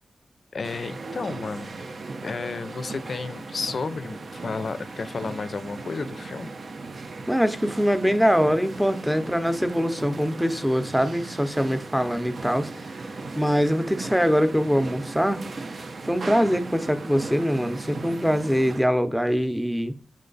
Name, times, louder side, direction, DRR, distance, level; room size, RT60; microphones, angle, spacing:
voice 1, 0.5-1.9 2.2-6.5, left 4 dB, 60° left, 0.4 m, -32 dB
sound 1, 0.6-18.9, right 3 dB, 65° right, 0.6 m, -37 dB
voice 2, 7.3-12.7 13.3-15.4 16.0-19.9, equal, 5° right, 0.7 m, -23 dB
7.4 x 3.3 x 3.9 m
wide cardioid pair, 90°, 0 cm